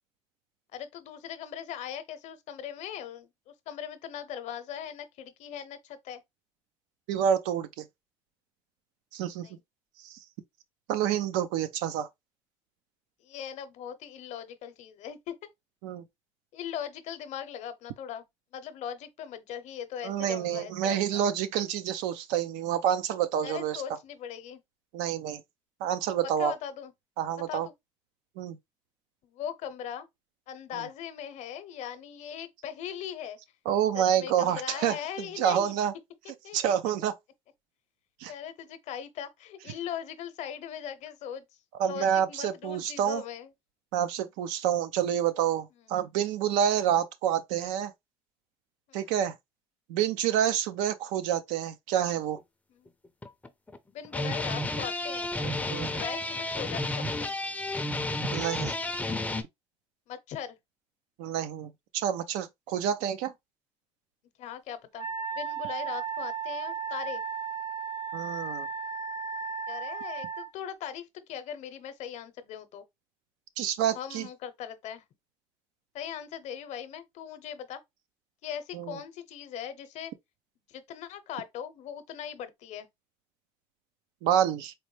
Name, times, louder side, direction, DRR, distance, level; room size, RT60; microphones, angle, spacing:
voice 1, 0.7-6.2 9.4-9.5 13.2-15.4 16.5-18.2 18.5-21.2 23.4-24.6 26.2-26.9 27.5-27.7 29.2-30.1 30.5-33.4 33.9-35.8 36.4-36.6 38.2-41.4 41.8-43.5 48.9-49.1 52.7-52.9 53.9-57.3 60.1-60.6 64.4-65.1 65.3-67.2 69.7-72.8 73.9-75.0 75.9-77.8 78.4-80.1 80.7-82.9, left 9 dB, 60° left, 0.7 m, -39 dB
voice 2, 7.1-7.9 9.1-9.5 10.0-10.2 10.9-12.1 15.8-16.0 20.0-23.8 24.9-25.4 25.8-26.5 27.2-27.7 28.4-28.6 33.7-35.9 36.5-37.2 38.2-38.3 41.8-43.2 43.9-47.9 48.9-49.3 49.9-52.4 55.7-55.9 58.3-58.7 61.2-63.3 68.1-68.7 73.6-74.3 78.7-78.9 84.2-84.7, right 9 dB, 85° right, 0.5 m, -28 dB
sound 1, 52.4-52.5 53.0-53.8 54.0-59.4, left 1 dB, 10° left, 0.5 m, -32 dB
Wind instrument woodwind instrument, 65.0-70.5, right 6 dB, 30° right, 0.7 m, -35 dB
4.1 x 2.1 x 3.2 m
supercardioid pair, 100°, 13 cm